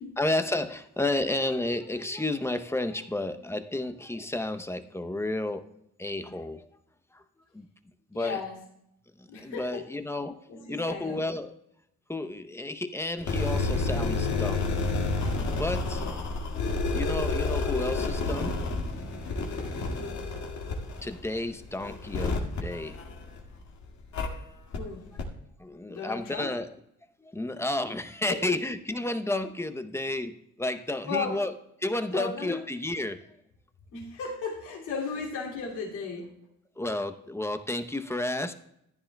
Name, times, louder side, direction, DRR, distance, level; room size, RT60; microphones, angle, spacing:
voice 1, 0.2-5.6 6.0-6.7 7.1-7.2 7.5-7.7 8.1-8.4 9.2-10.4 10.7-11.6 12.1-14.7 15.5-16.0 16.9-18.6 21.0-23.0 25.6-26.7 27.2-31.5 31.8-33.2 36.8-38.5, left 2 dB, 10° left, 9 dB, 0.7 m, -31 dB
voice 2, 8.1-8.6 9.3-9.8 10.5-11.2 16.0-16.1 20.0-20.2 24.7-25.1 25.9-26.5 28.3-28.6 31.1-31.4 32.1-32.6 33.9-36.3, left 4 dB, 80° left, -3 dB, 2.6 m, -35 dB
sound 1, 13.2-23.6 24.1-24.3 24.7-24.8 25.2-25.3, left 3 dB, 65° left, 2.0 m, -30 dB
14.5 x 10.5 x 2.3 m, 0.77 s
cardioid pair, 90°, 30 cm